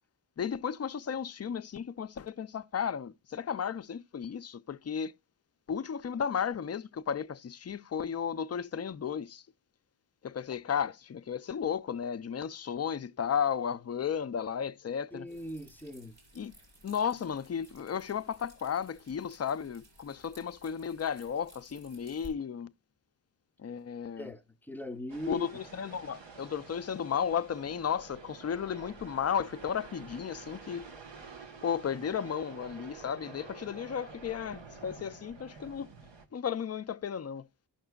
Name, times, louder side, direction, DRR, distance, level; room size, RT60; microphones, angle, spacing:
voice 1, 0.4-5.1 5.7-9.4 10.2-15.3 16.4-16.5 16.8-22.7 23.6-24.3 25.3-30.9 31.6-35.9 36.3-37.5, left 7 dB, 35° left, 0.4 m, -34 dB
voice 2, 15.1-16.1 24.2-25.5, left 1 dB, 5° left, 0.7 m, -40 dB
sound 1, 15.3-22.3, equal, 60° right, 5.5 m, -58 dB
sound 2, 25.1-36.3, right 4 dB, 75° right, 1.4 m, -49 dB
16.5 x 5.9 x 2.3 m
wide cardioid pair, 140°, 44 cm